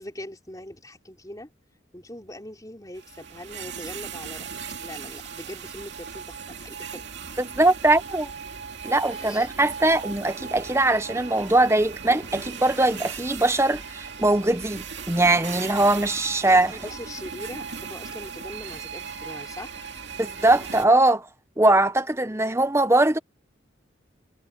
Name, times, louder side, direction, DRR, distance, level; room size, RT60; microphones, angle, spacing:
voice 1, 0.0-1.5 1.9-4.5 4.8-7.1 9.1-9.5 16.5-19.9, left 1 dB, 20° left, 4.0 m, -41 dB
sound 1, 3.0-20.9, right 6 dB, 60° right, 2.6 m, -38 dB
voice 2, 7.4-8.3 8.8-16.7 20.2-21.3 21.6-23.2, right 2 dB, 15° right, 0.8 m, -21 dB
head